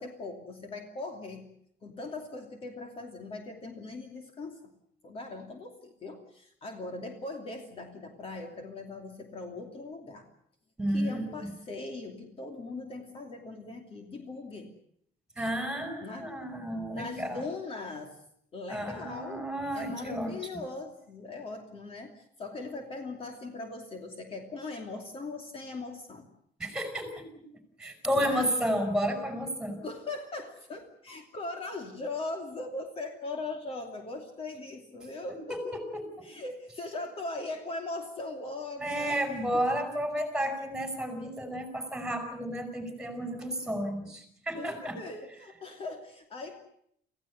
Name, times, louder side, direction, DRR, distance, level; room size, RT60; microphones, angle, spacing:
voice 1, 0.0-1.5 1.8-4.7 5.0-10.3 10.9-14.7 16.0-16.3 16.9-18.2 18.5-26.3 28.2-28.5 29.8-35.9 36.2-39.2 39.5-39.9 44.6-46.6, left 2 dB, 35° left, 4 dB, 2.8 m, -40 dB
voice 2, 10.8-11.5 15.4-17.4 18.7-20.3 26.6-27.2 27.8-29.8 35.5-36.0 38.8-45.0, equal, 5° right, 7 dB, 5.3 m, -32 dB
27.0 x 16.0 x 9.4 m, 0.70 s
cardioid pair, 160°, 16 cm